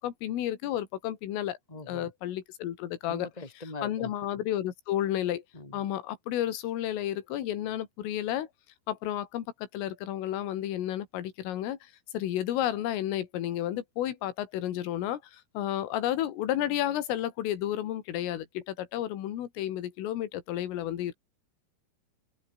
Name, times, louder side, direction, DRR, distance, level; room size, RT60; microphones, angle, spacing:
voice 1, 0.0-1.6 1.9-3.3 3.8-5.4 5.7-8.5 8.9-21.1, left 12 dB, 75° left, 4.9 m, -32 dB
voice 2, 1.7-2.1 3.1-4.4 5.5-5.9, left 2 dB, 10° left, 4.5 m, -42 dB
open air
omnidirectional pair, 5.9 m